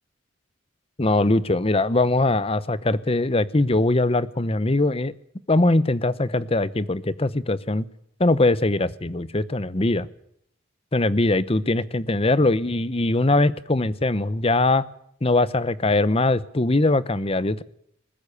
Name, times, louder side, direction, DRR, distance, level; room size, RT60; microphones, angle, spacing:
voice 1, 1.0-5.1 5.5-7.9 8.2-10.1 10.9-14.8 15.2-17.6, left 2 dB, 30° left, 16 dB, 0.8 m, -21 dB
20.5 x 13.5 x 10.0 m, 0.72 s
head